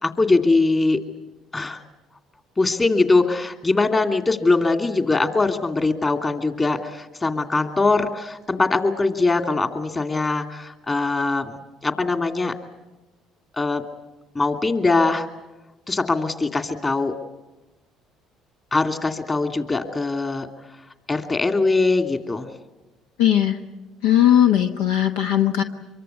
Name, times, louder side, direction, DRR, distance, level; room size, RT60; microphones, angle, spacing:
voice 1, 0.0-1.0 1.5-1.8 2.6-12.5 13.5-13.8 14.3-15.3 15.9-17.1 18.7-20.5 21.1-22.5, left 3 dB, 25° left, 6 dB, 2.6 m, -21 dB
voice 2, 23.2-23.6 24.0-25.6, left 11 dB, 85° left, 6 dB, 1.2 m, -18 dB
25.0 x 23.0 x 8.3 m, 1.1 s
supercardioid pair, 70°, 0 cm